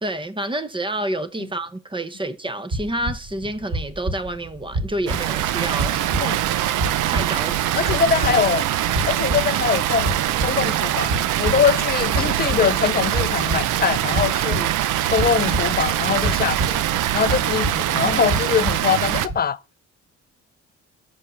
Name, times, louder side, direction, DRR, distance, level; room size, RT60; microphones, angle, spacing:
voice 1, 0.0-6.4 7.1-7.9, right 1 dB, 15° right, 0.9 m, -29 dB
sound 1, 2.7-19.3, right 1 dB, 45° right, 3.3 m, -30 dB
Water, 5.1-19.3, right 13 dB, 85° right, 0.6 m, -23 dB
voice 2, 7.8-8.6 9.1-14.7 15.1-16.8 17.1-19.6, left 7 dB, 30° left, 0.5 m, -23 dB
6.4 x 5.3 x 6.7 m
cardioid pair, 90°, 30 cm